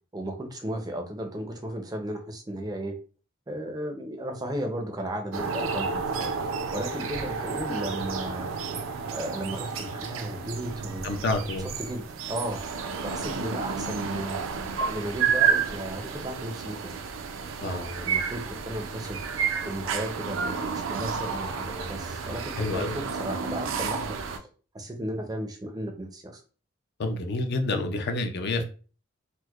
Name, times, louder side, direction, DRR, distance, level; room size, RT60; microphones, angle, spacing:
voice 1, 0.1-2.9 3.5-8.6 9.1-14.4 14.8-16.8 17.6-24.4 24.7-26.4, right 1 dB, 20° right, 4 dB, 0.5 m, -35 dB
sound 1, 5.3-24.4, right 6 dB, 70° right, 0.4 m, -31 dB
voice 2, 11.0-11.7 17.6-17.9 22.6-23.0 27.0-28.7, left 2 dB, 55° left, 6 dB, 0.4 m, -28 dB
4.5 x 2.1 x 2.3 m, 0.38 s
head